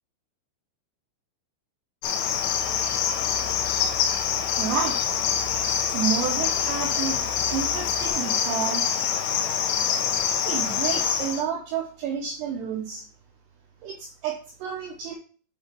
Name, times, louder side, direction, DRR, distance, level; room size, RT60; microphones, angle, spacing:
Cricket, 2.0-11.4, left 8 dB, 80° left, 3.1 m, -25 dB
sound 1, 2.2-8.1, left 6 dB, 50° left, 1.3 m, -43 dB
voice 1, 4.6-5.0 5.9-7.2 7.5-9.1 10.4-13.1 13.8-15.2, right 7 dB, 80° right, -1 dB, 2.4 m, -30 dB
8.4 x 2.8 x 4.4 m, 0.41 s
omnidirectional pair, 5.8 m